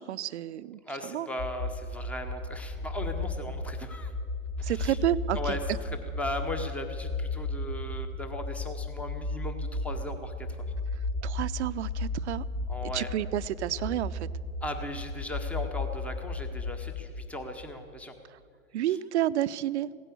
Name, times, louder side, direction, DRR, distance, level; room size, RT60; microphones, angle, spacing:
voice 1, 0.0-1.3 4.6-5.6 11.2-12.4 12.8-14.3 18.7-19.9, right 12 dB, 55° right, 14 dB, 0.6 m, -30 dB
voice 2, 0.8-4.1 4.6-5.0 5.3-10.5 12.7-13.1 14.6-18.2, left 1 dB, 5° left, 7 dB, 0.9 m, -37 dB
sound 1, 1.4-17.4, left 2 dB, 50° left, 2.7 m, -34 dB
16.5 x 10.0 x 8.3 m, 2.1 s
hypercardioid pair, 130°, 42 cm